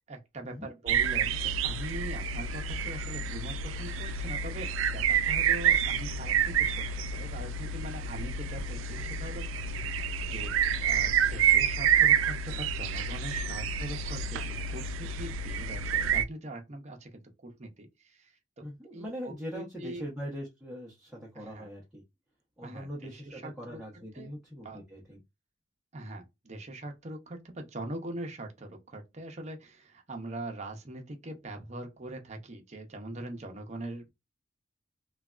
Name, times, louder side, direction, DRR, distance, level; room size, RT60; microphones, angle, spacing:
voice 1, 0.1-9.9 10.3-10.5 10.8-18.6 18.9-20.1 21.3-21.7 22.6-24.3 24.6-24.8 25.9-34.1, right 1 dB, 35° right, 0.6 m, -42 dB
sound 1, 0.9-16.2, right 7 dB, 90° right, 0.3 m, -28 dB
voice 2, 18.6-22.0 22.6-25.2, equal, 5° right, 0.7 m, -41 dB
3.2 x 2.3 x 2.3 m
head